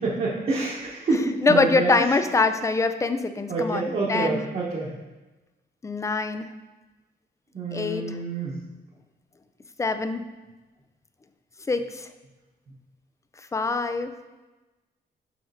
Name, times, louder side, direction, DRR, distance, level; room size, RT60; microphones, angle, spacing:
voice 1, 0.0-2.1 3.5-4.9 7.5-8.6, right 3 dB, 55° right, -8 dB, 1.3 m, -27 dB
voice 2, 1.4-4.4 5.8-6.5 7.7-8.0 9.8-10.2 11.7-12.1 13.5-14.1, left 3 dB, 15° left, 10 dB, 0.4 m, -24 dB
7.3 x 5.7 x 2.8 m, 1.1 s
cardioid pair, 120°, 18 cm